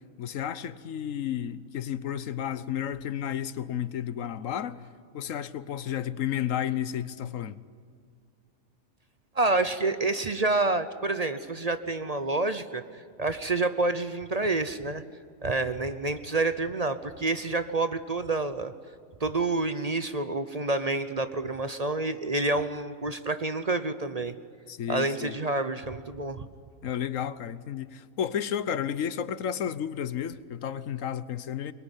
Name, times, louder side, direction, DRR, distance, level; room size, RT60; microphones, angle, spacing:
voice 1, 0.2-4.9 5.1-7.6 24.7-25.4 26.8-31.7, left 9 dB, 80° left, 15 dB, 1.2 m, -32 dB
voice 2, 9.3-15.0 15.4-18.7 19.2-24.3 24.9-26.5, right 2 dB, 35° right, 11 dB, 0.8 m, -28 dB
23.5 x 22.0 x 9.9 m, 2.1 s
omnidirectional pair, 1.3 m